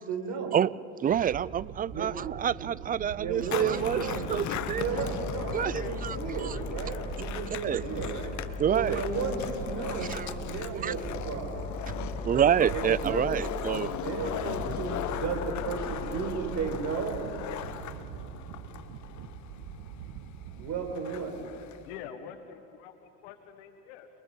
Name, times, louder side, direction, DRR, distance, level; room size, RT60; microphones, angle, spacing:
voice 1, 0.1-0.6 1.9-2.1 2.6-2.7 3.1-4.3 4.7-8.3 8.7-11.6 12.7-13.4 13.7-17.2 20.6-21.3, right 5 dB, 55° right, 4 dB, 5.0 m, -34 dB
voice 2, 1.0-4.9 5.5-6.6 7.6-7.8 8.6-9.0 10.0-10.4 10.7-10.9 12.2-13.9, right 9 dB, 25° right, 22 dB, 0.4 m, -28 dB
sound 1, 1.1-20.9, right 10 dB, 70° right, 1.2 m, -43 dB
Skateboard, 3.4-22.0, left 10 dB, 50° left, 1.2 m, -39 dB
sound 2, 4.6-7.5 7.8-10.6 10.9-13.7 14.1-16.7, left 2 dB, 20° left, 2.9 m, -39 dB
voice 3, 6.5-7.6 21.8-24.1, left 9 dB, 80° left, 8 dB, 1.5 m, -46 dB
29.0 x 21.5 x 5.3 m, 2.7 s
supercardioid pair, 95°, 35 cm